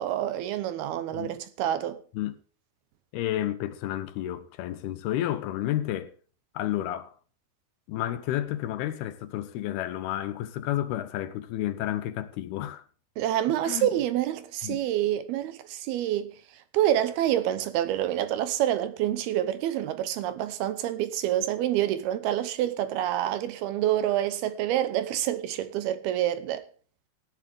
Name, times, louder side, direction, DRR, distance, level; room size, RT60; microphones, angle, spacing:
voice 1, 0.0-2.0 13.2-16.3 16.7-26.6, right 12 dB, 75° right, 2.7 m, -27 dB
voice 2, 3.1-6.1 6.5-7.1 7.9-12.8 13.6-13.9 14.6-14.8, left 13 dB, 80° left, 2.7 m, -31 dB
16.5 x 11.0 x 3.5 m
omnidirectional pair, 4.8 m